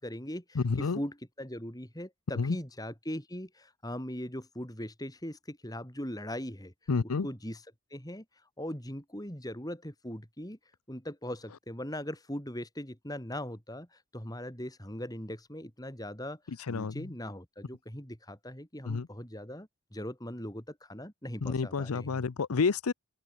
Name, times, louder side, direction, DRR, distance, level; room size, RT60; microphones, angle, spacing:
voice 1, 0.0-6.7 7.2-7.6 7.9-8.2 8.6-10.6 10.9-16.4 16.7-22.2, equal, 15° left, 4.9 m, -40 dB
voice 2, 0.6-1.0 2.4-2.6 6.9-7.3 16.7-17.1 18.9-19.1 21.4-22.9, left 4 dB, 80° left, 0.6 m, -29 dB
open air
head